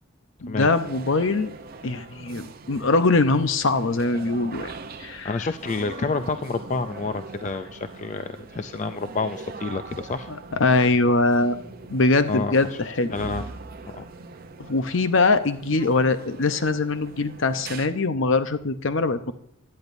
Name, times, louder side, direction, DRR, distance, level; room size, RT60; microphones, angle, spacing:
voice 1, 0.4-1.5 1.8-4.7 5.0-5.4 10.3-11.6 11.9-13.1 14.6-19.3, left 3 dB, 65° left, 10 dB, 0.8 m, -22 dB
sound 1, 0.6-17.9, right 3 dB, 45° right, 0.7 m, -41 dB
voice 2, 5.2-10.3 12.3-12.5 13.1-13.4 13.9-14.0, left 4 dB, 35° left, 10 dB, 0.4 m, -29 dB
16.0 x 10.5 x 2.6 m, 0.75 s
head